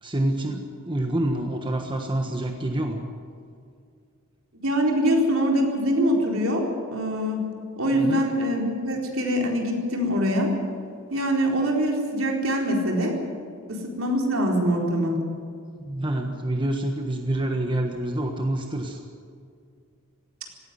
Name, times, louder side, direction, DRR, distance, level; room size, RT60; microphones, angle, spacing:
voice 1, 0.0-3.0 7.9-8.2 15.8-19.0, right 1 dB, 20° right, 3 dB, 1.4 m, -27 dB
voice 2, 4.5-6.6 6.9-7.4 7.8-10.5 11.1-13.1 13.7-15.2, equal, 65° right, 0 dB, 4.2 m, -23 dB
17.5 x 16.0 x 9.8 m, 2.3 s
head